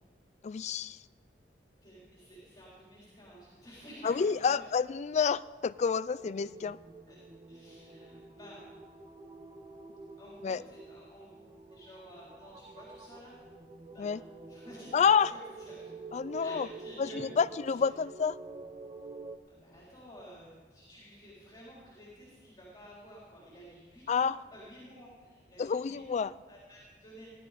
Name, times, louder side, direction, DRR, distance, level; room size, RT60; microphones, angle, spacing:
voice 1, 0.4-1.0 4.0-6.8 10.4-10.6 14.0-14.2 14.9-15.3 16.1-16.7 17.0-18.4 24.1-24.4 25.6-26.3, left 6 dB, 40° left, 17 dB, 0.3 m, -29 dB
voice 2, 1.8-4.6 7.1-7.2 7.5-8.6 10.2-11.4 11.7-13.4 13.9-14.9 15.2-15.8 16.4-17.2 17.7-17.8 19.5-26.2 26.5-27.3, equal, 20° left, -6 dB, 3.7 m, -52 dB
sound 1, 6.2-19.4, right 4 dB, 30° right, 0.8 m, -48 dB
17.0 x 11.5 x 5.0 m, 1.4 s
head